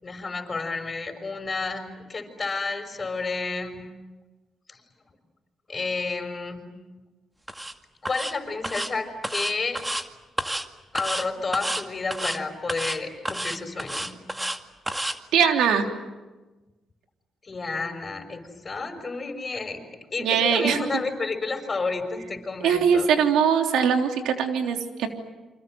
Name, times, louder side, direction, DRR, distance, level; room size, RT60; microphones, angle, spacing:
voice 1, 0.0-3.8 4.7-4.8 5.7-6.6 8.0-9.9 10.9-14.2 17.4-19.8 20.1-23.1, left 3 dB, 35° left, 6 dB, 6.1 m, -31 dB
sound 1, 7.5-7.7 8.1-8.3 8.6-8.9 9.2-10.0 10.4-10.7 11.0-11.3 11.5-11.8 12.1-12.4 12.7-13.0 13.3-14.6 14.9-15.2, right 1 dB, 10° right, 2.1 m, -30 dB
voice 2, 15.3-15.9 20.2-20.8 22.6-25.1, right 7 dB, 85° right, 4 dB, 3.4 m, -21 dB
29.0 x 25.5 x 7.9 m, 1.2 s
cardioid pair, 80°, 0 cm